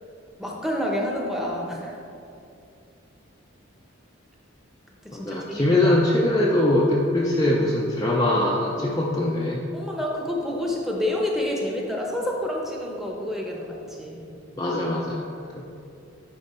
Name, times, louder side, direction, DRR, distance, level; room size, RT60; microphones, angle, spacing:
voice 1, 0.4-2.0 5.0-6.0 9.7-14.3, left 1 dB, ahead, -2 dB, 0.9 m, -28 dB
voice 2, 5.1-9.6 14.6-15.2 15.6-15.7, left 1 dB, 15° left, -3 dB, 0.5 m, -22 dB
10.5 x 4.3 x 4.3 m, 2.6 s
head